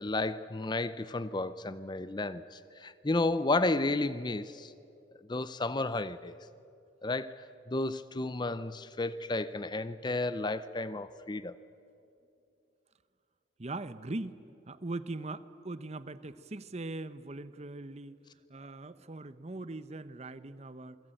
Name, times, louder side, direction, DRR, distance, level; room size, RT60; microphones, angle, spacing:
voice 1, 0.0-4.7 5.3-6.4 7.0-7.4 7.7-11.5, left 2 dB, 20° left, 0.6 m, -32 dB
voice 2, 13.6-18.2 18.5-21.0, right 2 dB, 35° right, 0.8 m, -41 dB
28.0 x 21.0 x 9.0 m
head